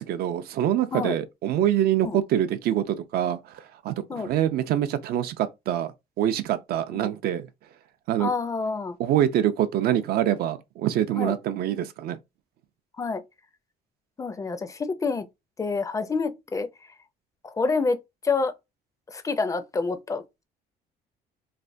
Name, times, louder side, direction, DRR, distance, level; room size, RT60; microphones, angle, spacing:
voice 1, 0.0-5.9 6.2-7.5 8.1-8.3 9.0-12.2, right 11 dB, 65° right, 0.4 m, -25 dB
voice 2, 8.2-9.0 11.2-11.3 13.0-13.2 14.2-15.3 15.6-16.7 17.4-18.0 18.2-18.5 19.1-20.2, left 4 dB, 20° left, 0.4 m, -27 dB
3.2 x 2.1 x 2.5 m
cardioid pair, 110°, 17 cm